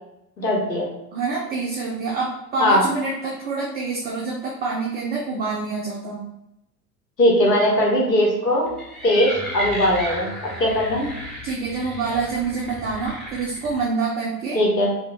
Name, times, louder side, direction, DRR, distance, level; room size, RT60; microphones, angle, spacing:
voice 1, 0.4-0.9 2.6-2.8 7.2-8.7 9.0-11.1 14.5-14.9, left 1 dB, 85° left, -2 dB, 1.0 m, -19 dB
voice 2, 1.1-6.3 11.4-14.6, right 4 dB, 20° right, -3 dB, 0.4 m, -26 dB
sound 1, 8.7-13.8, equal, ahead, 0.8 m, -34 dB
2.8 x 2.2 x 3.5 m, 0.85 s
figure-of-eight pair, 75°, 49 cm